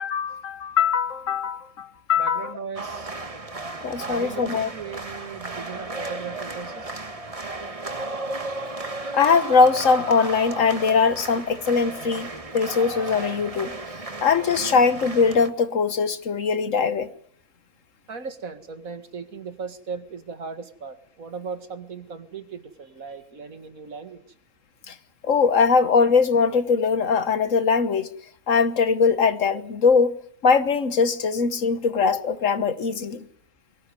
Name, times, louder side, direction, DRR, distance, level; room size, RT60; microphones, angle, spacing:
voice 1, 0.0-2.5 3.8-4.7 9.1-12.3 12.5-13.7 14.2-17.1 24.9-25.0 25.2-28.1 28.5-30.1 30.4-33.2, left 5 dB, 65° left, 1.5 m, -21 dB
voice 2, 2.2-3.1 4.1-7.1 18.1-24.2, right 5 dB, 75° right, 2.3 m, -37 dB
sound 1, 2.8-15.5, right 2 dB, 25° right, 1.5 m, -34 dB
22.0 x 18.5 x 9.8 m
omnidirectional pair, 1.5 m